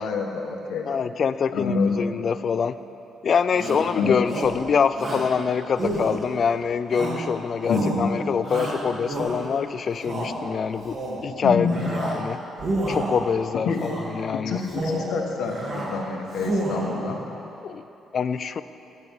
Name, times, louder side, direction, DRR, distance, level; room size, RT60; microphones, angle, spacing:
voice 1, 0.0-0.9 1.5-2.0 4.0-4.2 7.7-8.1 11.4-11.8 13.6-13.8 14.3-17.2, left 4 dB, 80° left, 1 dB, 1.3 m, -27 dB
voice 2, 0.9-2.8 3.2-12.4 12.9-14.6 17.6-17.9 18.1-18.6, left 6 dB, 50° left, 13 dB, 0.4 m, -25 dB
Shout, 3.5-3.9 4.3-4.6 5.0-5.3 5.8-6.4 6.9-7.3 7.6-8.0 8.4-9.5 9.9-10.3 10.8-11.2 11.6-12.2 12.5-13.3 13.8-14.1 14.6-15.1 15.4-15.9 16.3-17.0, right 1 dB, 45° right, 2.6 m, -30 dB
15.0 x 9.6 x 3.6 m, 2.9 s
cardioid pair, 90°, 0 cm